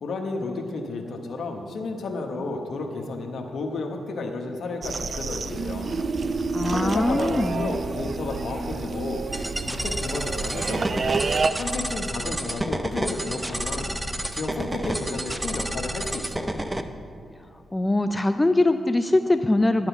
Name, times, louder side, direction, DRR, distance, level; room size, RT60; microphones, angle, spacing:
voice 1, 0.0-6.0 6.7-9.2 9.6-10.9 11.6-14.0 14.3-16.6, left 3 dB, 75° left, 3 dB, 1.0 m, -32 dB
sound 1, 4.8-11.5, right 4 dB, 55° right, 0.5 m, -29 dB
voice 2, 6.5-7.7 17.7-19.9, left 2 dB, 20° left, 9 dB, 0.4 m, -22 dB
sound 2, 9.3-16.8, right 1 dB, 15° right, 0.7 m, -30 dB
11.0 x 7.6 x 5.9 m, 2.5 s
cardioid pair, 65°, 0 cm